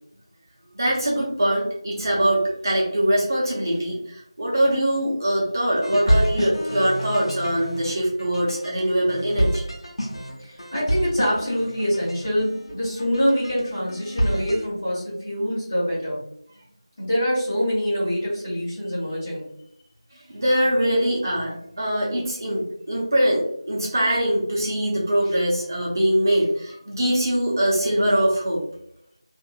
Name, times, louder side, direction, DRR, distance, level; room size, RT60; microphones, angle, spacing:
voice 1, 0.7-9.6 20.3-28.6, right 1 dB, 40° right, -4 dB, 0.8 m, -22 dB
sound 1, 5.8-14.7, equal, 70° left, 0.8 m, -28 dB
voice 2, 10.4-16.2 17.0-19.4, equal, 25° left, -9 dB, 1.4 m, -25 dB
3.0 x 2.6 x 2.4 m, 0.71 s
figure-of-eight pair, 175°, 3 cm